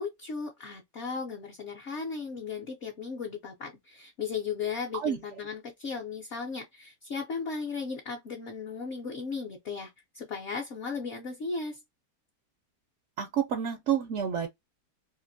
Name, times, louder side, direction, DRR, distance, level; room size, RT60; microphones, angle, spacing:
voice 1, 0.0-11.8, left 5 dB, 60° left, 0.8 m, -36 dB
voice 2, 13.2-14.5, right 8 dB, 75° right, 0.6 m, -29 dB
2.8 x 2.5 x 2.5 m
omnidirectional pair, 1.8 m